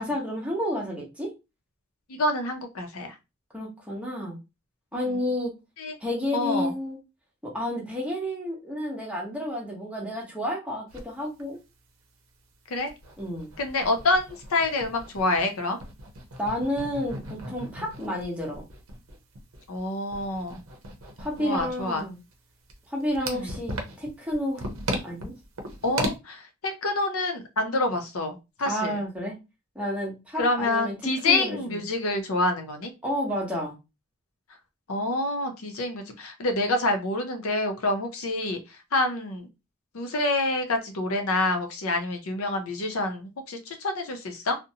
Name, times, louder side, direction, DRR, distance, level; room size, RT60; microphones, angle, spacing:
voice 1, 0.0-1.3 3.5-4.4 4.9-5.5 6.0-7.0 7.4-11.6 13.2-13.5 16.4-18.6 21.2-22.2 22.9-24.7 25.0-25.3 28.6-29.4 29.7-31.0 31.2-31.8 33.0-33.8, equal, 5° right, -3 dB, 0.8 m, -30 dB
voice 2, 2.1-3.1 4.9-5.2 5.8-6.0 6.3-6.7 12.7-12.9 13.6-15.8 19.7-20.6 21.4-22.0 23.2-23.6 25.8-29.0 30.4-32.9 34.9-38.6 38.9-39.5 39.9-44.6, left 2 dB, 80° left, 5 dB, 0.6 m, -27 dB
sound 1, 10.9-11.0 11.4-11.5 11.8-11.9 12.4-15.5 15.8-26.1, right 1 dB, 65° right, 0.6 m, -37 dB
2.6 x 2.0 x 2.7 m, 0.26 s
head